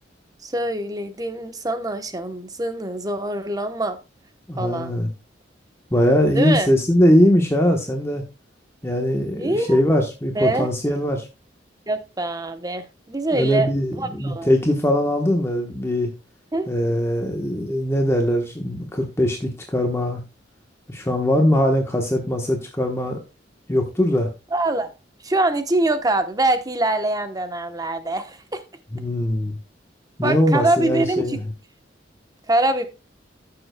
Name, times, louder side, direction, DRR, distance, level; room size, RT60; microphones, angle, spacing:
voice 1, 0.4-4.0 4.6-5.0 6.3-6.7 9.4-9.8 10.3-10.7 11.9-14.5 16.5-16.7 24.5-24.9 25.2-28.6 30.2-31.4 32.5-32.9, right 2 dB, 20° right, 0.9 m, -24 dB
voice 2, 4.5-5.1 5.9-8.2 8.8-11.3 13.3-16.1 16.7-20.2 20.9-23.2 23.7-24.3 28.9-29.6 30.2-31.5, equal, 15° left, 1.1 m, -21 dB
14.0 x 6.8 x 2.2 m
head